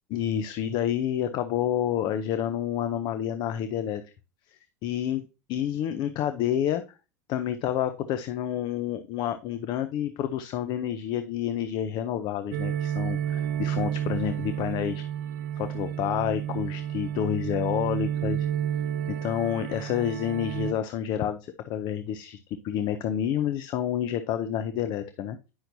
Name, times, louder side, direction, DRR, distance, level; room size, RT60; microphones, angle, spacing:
voice 1, 0.1-4.0 4.5-5.2 5.5-6.8 7.3-15.1 15.6-18.5 19.1-25.4, left 10 dB, 50° left, 10 dB, 0.6 m, -29 dB
sound 1, 12.5-20.7, right 10 dB, 75° right, 0.7 m, -31 dB
9.5 x 5.7 x 2.7 m, 0.30 s
hypercardioid pair, 90°, 9 cm